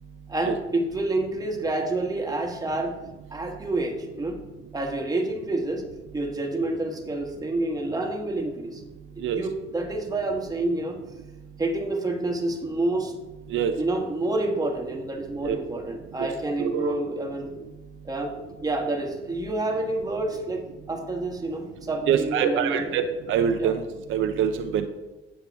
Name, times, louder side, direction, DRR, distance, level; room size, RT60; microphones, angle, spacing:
voice 1, 0.3-3.0 3.3-4.4 4.7-5.8 6.1-8.8 9.3-11.0 11.6-13.1 13.8-17.5 18.0-18.3 18.6-23.0 23.6-23.7, right 2 dB, 20° right, 2 dB, 1.4 m, -28 dB
voice 2, 16.6-16.9 22.1-23.8 24.1-24.9, right 8 dB, 80° right, 6 dB, 0.6 m, -24 dB
8.0 x 7.3 x 3.5 m, 1.1 s
cardioid pair, 90°, 20 cm